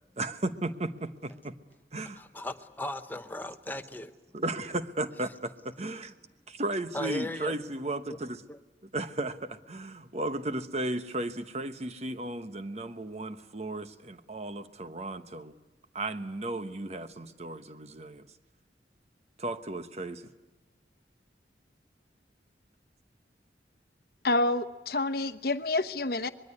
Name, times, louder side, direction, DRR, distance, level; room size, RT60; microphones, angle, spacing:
voice 1, 0.2-1.6 1.9-2.2 4.3-6.2 6.5-8.4 8.8-15.5 15.9-18.2 19.4-20.3, right 2 dB, 40° right, 1.1 m, -35 dB
voice 2, 2.2-4.1 6.9-7.5 8.1-8.2 8.5-8.6, left 1 dB, 10° left, 0.9 m, -37 dB
voice 3, 24.2-26.3, left 2 dB, 60° left, 1.0 m, -28 dB
25.0 x 21.5 x 9.8 m
head